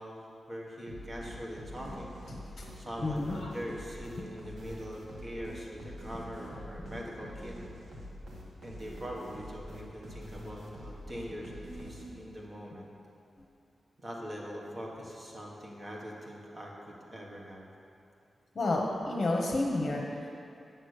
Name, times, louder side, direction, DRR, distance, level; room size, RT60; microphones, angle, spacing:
voice 1, 0.0-2.2 2.7-7.6 8.6-12.9 14.0-17.7, equal, 25° right, -2 dB, 1.5 m, -42 dB
sound 1, 0.9-12.5, equal, 80° right, 1.6 m, -45 dB
voice 2, 2.3-2.7 3.0-3.5 18.5-20.3, left 2 dB, 40° left, 0 dB, 1.1 m, -31 dB
9.1 x 6.2 x 6.6 m, 2.6 s
wide cardioid pair, 140°, 0 cm